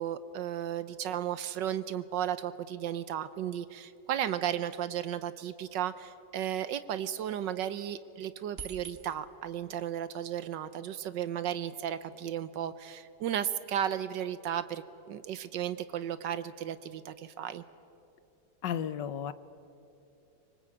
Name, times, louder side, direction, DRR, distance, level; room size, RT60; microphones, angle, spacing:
voice 1, 0.0-17.6, right 10 dB, 75° right, 13 dB, 1.4 m, -34 dB
sound 1, 8.6-9.4 10.7-10.8 11.0-14.4, right 5 dB, 35° right, 1.7 m, -50 dB
voice 2, 18.6-19.3, left 9 dB, 75° left, 14 dB, 1.5 m, -33 dB
25.5 x 24.0 x 8.6 m, 2.7 s
omnidirectional pair, 2.0 m